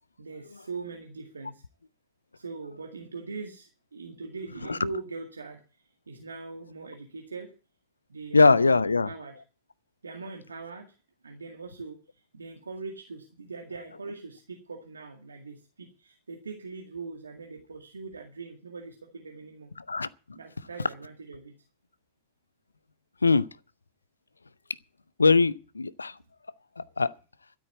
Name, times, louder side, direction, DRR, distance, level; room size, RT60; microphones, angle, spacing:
voice 1, 0.2-1.6 2.3-5.6 6.1-7.5 8.1-9.3 10.0-11.0 11.2-19.7 20.3-21.5, right 4 dB, 75° right, 2.0 m, -41 dB
voice 2, 8.3-9.1 19.9-20.1 23.2-23.5 25.2-26.1 26.8-27.1, left 4 dB, 80° left, 0.6 m, -21 dB
13.0 x 8.5 x 8.3 m
figure-of-eight pair, 90°, 0 cm